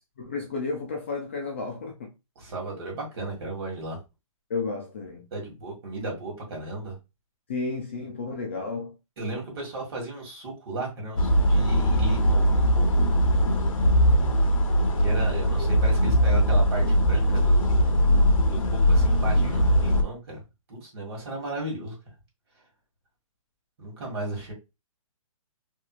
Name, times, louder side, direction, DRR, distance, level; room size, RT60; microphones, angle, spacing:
voice 1, 0.2-2.1 4.5-5.3 7.5-8.9, left 4 dB, 20° left, 0.3 m, -32 dB
voice 2, 2.3-4.0 5.3-7.0 9.2-13.1 15.0-18.1 18.4-20.4 20.7-22.0 23.8-24.5, right 2 dB, 50° right, 1.7 m, -35 dB
sound 1, 11.2-20.0, equal, 75° left, 0.8 m, -21 dB
3.0 x 3.0 x 2.3 m
hypercardioid pair, 175°, 18 cm